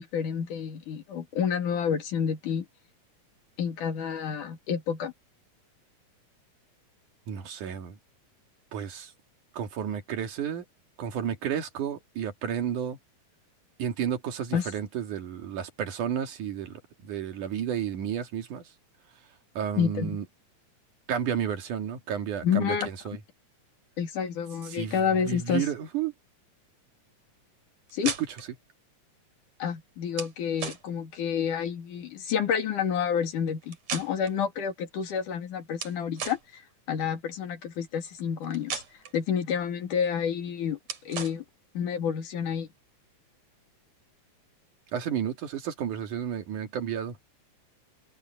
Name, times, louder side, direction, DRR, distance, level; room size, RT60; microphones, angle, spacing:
voice 1, 0.0-2.7 3.6-5.1 14.5-14.7 19.8-20.2 22.4-22.9 24.0-25.7 27.9-28.1 29.6-36.6 36.9-38.8 39.1-40.8 41.1-41.4 41.8-42.7, left 7 dB, 85° left, 3.9 m, -29 dB
voice 2, 7.3-8.0 8.7-9.1 9.5-10.6 11.0-13.0 13.8-18.6 19.6-20.3 21.1-23.2 24.7-25.0 25.3-26.1 28.1-28.2 44.9-47.2, right 8 dB, 80° right, 3.5 m, -32 dB
sound 1, 27.9-28.5 30.1-30.3 30.6-30.8 33.6-34.4 35.8-36.4 38.4-39.1 40.9-41.4, right 6 dB, 60° right, 3.9 m, -36 dB
omnidirectional pair, 3.5 m